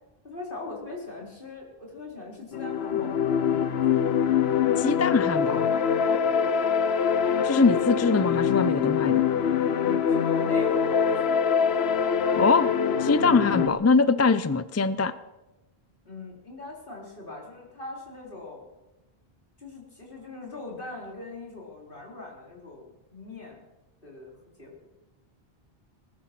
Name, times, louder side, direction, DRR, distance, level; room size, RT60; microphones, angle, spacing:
voice 1, 0.2-4.2 6.2-6.4 10.1-11.2 16.0-18.7 19.6-23.6 24.0-24.3 24.6-24.7, left 2 dB, 60° left, -2 dB, 4.3 m, -41 dB
sound 1, 2.5-13.7, left 7 dB, 90° left, 1.0 m, -24 dB
voice 2, 4.8-5.7 7.4-9.2 12.3-12.7 13.0-15.1, left 4 dB, 25° left, 14 dB, 0.4 m, -22 dB
19.5 x 12.0 x 6.0 m, 1.0 s
omnidirectional pair, 1.0 m